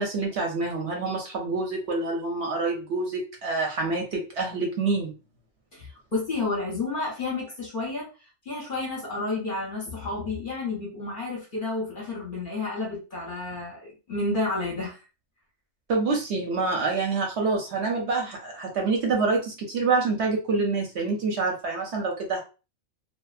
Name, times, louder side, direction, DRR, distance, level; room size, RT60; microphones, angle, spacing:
voice 1, 0.0-5.1 15.9-22.4, right 3 dB, 65° right, 0 dB, 0.8 m, -27 dB
voice 2, 5.7-15.0, left 3 dB, 45° left, -3 dB, 0.8 m, -31 dB
2.6 x 2.0 x 2.3 m, 0.32 s
omnidirectional pair, 1.4 m